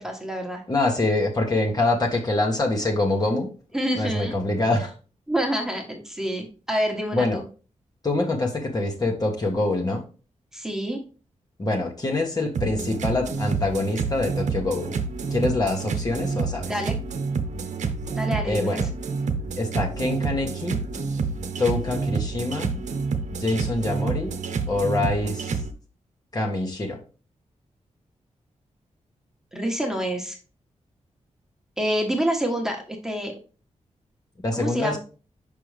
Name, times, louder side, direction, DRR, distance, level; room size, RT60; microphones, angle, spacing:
voice 1, 0.0-0.6 3.7-4.4 5.3-7.4 10.5-11.0 16.7-17.0 18.1-18.8 29.5-30.4 31.8-33.3 34.6-35.0, equal, 5° right, 1 dB, 1.4 m, -27 dB
voice 2, 0.7-3.5 3.9-4.9 7.1-7.4 8.0-10.0 11.6-15.0 15.3-16.7 18.5-18.9 19.6-20.8 21.6-22.8 23.4-24.3 24.7-25.6 26.3-27.0 34.4-35.0, left 2 dB, 30° left, 0 dB, 1.4 m, -25 dB
sound 1, 12.5-25.7, right 4 dB, 80° right, 0.8 m, -28 dB
6.0 x 5.5 x 3.4 m, 0.36 s
wide cardioid pair, 105°, 12 cm